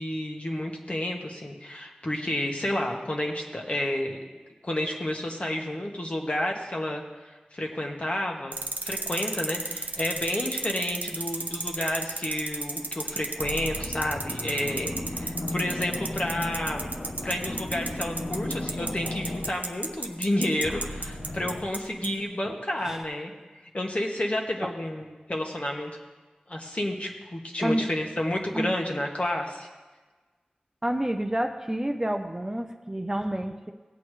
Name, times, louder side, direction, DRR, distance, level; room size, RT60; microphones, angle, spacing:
voice 1, 0.0-4.2 4.6-8.5 8.8-16.9 17.2-23.3 23.7-25.9 26.5-29.7, left 1 dB, 45° left, 0 dB, 1.5 m, -30 dB
sound 1, 8.5-21.8 22.0-22.1, right 3 dB, 65° right, 0.8 m, -32 dB
sound 2, 12.8-13.0 13.4-20.3 20.6-21.7, left 1 dB, 65° left, 1.0 m, -35 dB
voice 2, 30.8-33.7, right 1 dB, 20° right, 4 dB, 0.7 m, -29 dB
17.0 x 8.4 x 3.3 m, 1.3 s
wide cardioid pair, 60°, 3 cm